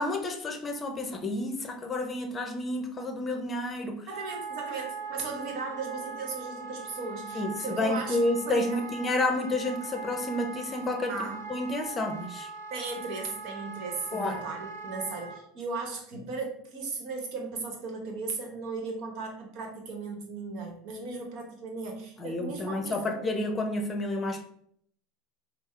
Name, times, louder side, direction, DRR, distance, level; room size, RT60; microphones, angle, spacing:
voice 1, 0.0-4.1 7.3-11.1 11.5-12.5 14.1-14.4 22.2-24.4, left 2 dB, 25° left, 4 dB, 0.7 m, -30 dB
voice 2, 4.1-8.2 8.4-8.8 11.1-11.4 12.7-23.4, right 4 dB, 60° right, 3 dB, 1.1 m, -36 dB
Wind instrument woodwind instrument, 4.1-15.4, right 5 dB, 90° right, 0.8 m, -41 dB
5.3 x 2.0 x 3.3 m, 0.65 s
hypercardioid pair, 90°, 0 cm